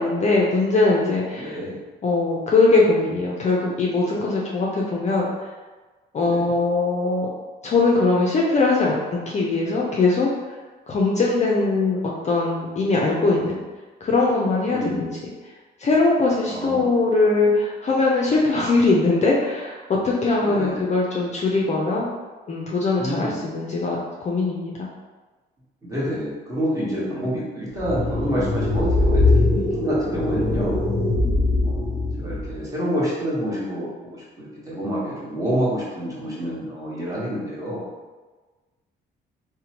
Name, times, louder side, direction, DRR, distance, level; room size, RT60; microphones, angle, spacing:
voice 1, 0.0-1.6 2.0-5.3 6.1-7.3 7.6-10.3 10.9-12.0 12.2-13.6 14.0-15.1 15.8-22.1 22.5-24.7, left 3 dB, 35° left, -3 dB, 0.4 m, -21 dB
voice 2, 1.4-1.8 6.3-6.6 14.7-15.0 16.5-16.9 20.4-20.8 23.0-23.4 25.8-29.2 29.5-30.8 31.6-37.9, equal, 15° right, -8 dB, 1.1 m, -28 dB
sound 1, 27.7-32.6, left 2 dB, 20° left, 1.0 m, -21 dB
2.7 x 2.1 x 2.8 m, 1.3 s
cardioid pair, 90°, 20 cm